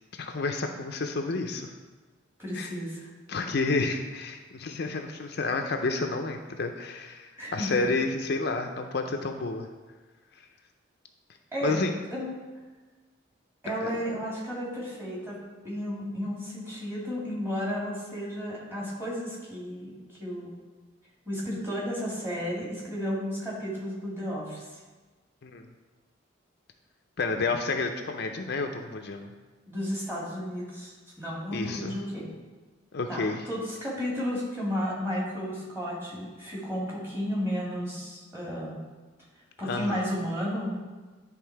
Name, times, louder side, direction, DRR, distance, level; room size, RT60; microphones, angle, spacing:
voice 1, 0.1-1.7 2.5-2.7 3.3-9.7 11.6-11.9 13.8-13.9 25.4-25.7 27.2-29.3 31.5-32.0 32.9-33.4 39.6-40.0, left 3 dB, 55° left, 4 dB, 0.5 m, -30 dB
voice 2, 2.4-3.0 7.4-7.7 11.5-12.3 13.6-15.4 15.6-20.5 21.3-24.6 29.7-32.3 33.1-38.8 39.6-40.8, equal, 15° right, -6 dB, 2.2 m, -33 dB
10.5 x 3.5 x 4.6 m, 1.3 s
head